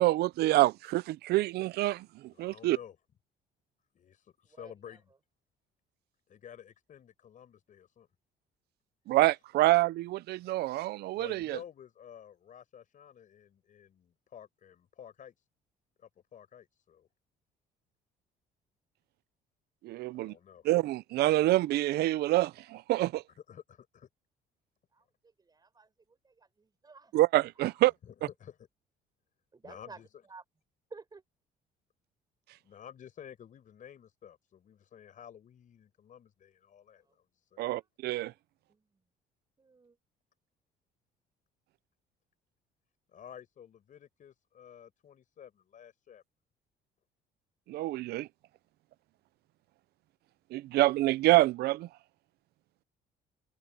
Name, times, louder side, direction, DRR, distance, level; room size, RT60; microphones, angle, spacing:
voice 1, 0.0-2.8 9.1-11.6 19.8-20.3 20.6-23.2 27.1-27.9 37.6-38.3 47.7-48.3 50.5-51.9, right 17 dB, 70° right, 0.6 m, -27 dB
voice 2, 2.3-3.0 3.9-5.1 6.3-8.1 11.1-15.4 16.0-17.1 20.1-20.7 23.1-24.1 28.0-28.7 29.6-30.1 32.6-37.7 43.1-46.2, left 9 dB, 50° left, 6.2 m, -52 dB
voice 3, 4.5-5.0 24.9-27.2 29.5-30.4 30.9-31.2 37.0-37.2 37.7-38.4 38.7-39.0 39.6-40.0, right 4 dB, 25° right, 5.6 m, -54 dB
cardioid pair, 110°, 17 cm